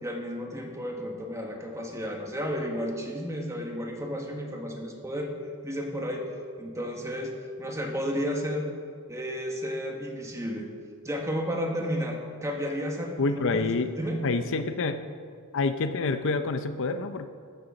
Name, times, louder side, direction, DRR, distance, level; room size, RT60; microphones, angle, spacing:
voice 1, 0.0-5.3 5.6-6.3 6.6-7.3 7.6-8.7 9.1-10.7 11.0-13.6 14.0-14.2, equal, 15° right, 1 dB, 1.4 m, -32 dB
voice 2, 13.2-13.9 14.2-15.0 15.5-17.3, left 3 dB, 60° left, 9 dB, 0.6 m, -27 dB
14.0 x 6.8 x 6.2 m, 2.1 s
head